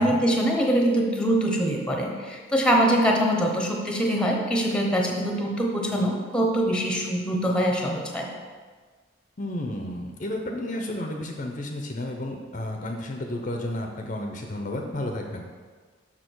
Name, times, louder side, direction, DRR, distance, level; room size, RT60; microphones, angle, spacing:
voice 1, 0.0-8.3, right 1 dB, 5° left, 0 dB, 0.9 m, -23 dB
voice 2, 9.4-15.5, left 1 dB, 40° left, 2 dB, 0.6 m, -32 dB
6.4 x 5.9 x 4.6 m, 1.5 s
head